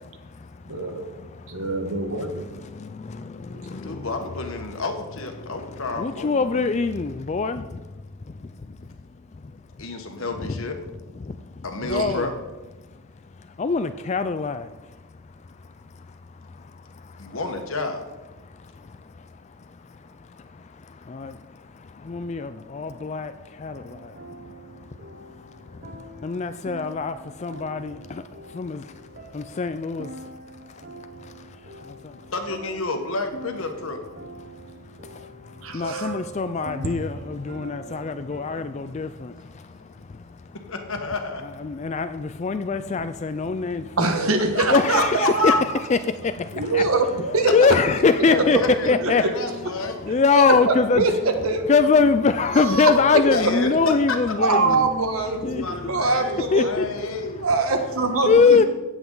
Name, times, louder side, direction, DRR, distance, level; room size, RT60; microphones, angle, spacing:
voice 1, 0.0-4.7 5.4-10.6 11.2-12.4 12.8-17.4 18.4-32.3 34.4-40.8 41.4-44.1 44.7-47.2 47.5-51.2 51.6-57.5 58.2-58.6, left 4 dB, 30° left, 11 dB, 0.3 m, -25 dB
voice 2, 0.7-1.1 1.5-2.4 3.5-3.6 35.6-36.1 44.0-45.6 46.5-47.5 49.0-49.1 50.7-51.1 51.4-51.7 52.5-52.9 54.4-56.7 57.4-58.6, right 3 dB, 70° right, 5 dB, 1.5 m, -23 dB
voice 3, 3.6-6.3 9.8-10.7 11.6-12.3 17.2-18.0 32.3-34.0 40.7-41.4 44.5-44.6 44.9-45.5 48.2-48.9 49.2-50.0 53.3-54.2 55.3-57.7, left 3 dB, 65° left, 5 dB, 1.4 m, -30 dB
sound 1, 23.7-39.0, right 2 dB, 40° right, 1.0 m, -43 dB
16.5 x 8.0 x 3.9 m, 1.2 s
head